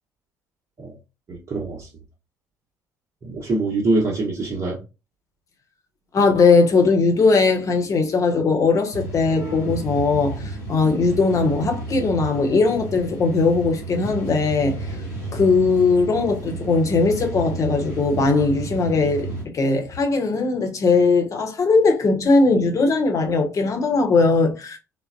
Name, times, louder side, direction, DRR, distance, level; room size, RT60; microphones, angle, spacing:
voice 1, 1.3-1.9 3.2-4.8, right 2 dB, 35° right, 0.9 m, -24 dB
voice 2, 6.1-15.0 15.3-19.3 19.5-24.8, left 4 dB, 40° left, 0.9 m, -19 dB
sound 1, 8.9-19.4, right 2 dB, 85° left, 1.1 m, -32 dB
3.8 x 2.0 x 2.5 m
figure-of-eight pair, 55°, 8 cm